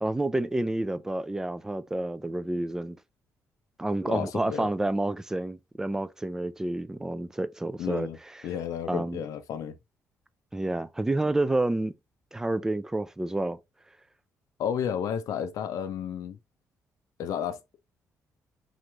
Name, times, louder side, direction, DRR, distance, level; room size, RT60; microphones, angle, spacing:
voice 1, 0.0-3.0 3.8-8.1 8.9-9.2 10.5-11.9 12.3-13.6, right 2 dB, 10° right, 0.4 m, -29 dB
voice 2, 4.1-4.7 7.8-8.2 8.4-9.8 14.6-16.4 17.2-17.8, left 8 dB, 75° left, 0.5 m, -32 dB
4.0 x 3.1 x 3.3 m
cardioid pair, 140°, 6 cm